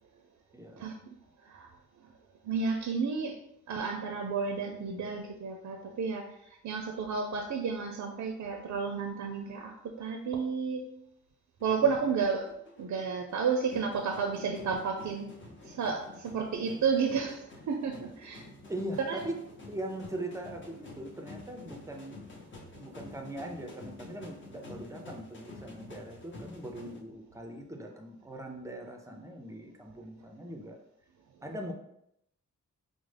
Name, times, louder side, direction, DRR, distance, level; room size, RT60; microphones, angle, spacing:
voice 1, 0.5-0.9 11.7-11.9 18.7-19.4 19.7-22.3 22.8-30.8 31.4-31.7, right 1 dB, 10° right, 2 dB, 0.4 m, -41 dB
voice 2, 2.4-3.3 3.7-6.2 6.6-9.7 10.0-10.8 11.6-12.5 12.8-15.3 15.7-18.4 19.0-19.4, right 5 dB, 70° right, 3 dB, 0.4 m, -31 dB
sound 1, 11.6-27.0, left 2 dB, 40° left, 0.6 m, -49 dB
5.0 x 2.0 x 3.2 m, 0.78 s
wide cardioid pair, 175°, 31 cm